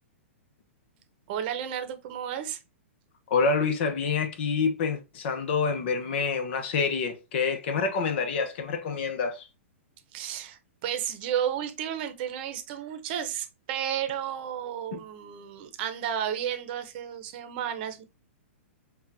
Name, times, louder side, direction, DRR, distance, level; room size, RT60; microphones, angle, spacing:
voice 1, 1.3-2.6 10.1-18.0, right 9 dB, 45° right, 0.8 m, -32 dB
voice 2, 3.3-9.5 14.9-15.0, left 5 dB, 55° left, 0.9 m, -27 dB
5.8 x 2.4 x 2.7 m
hypercardioid pair, 125°, 7 cm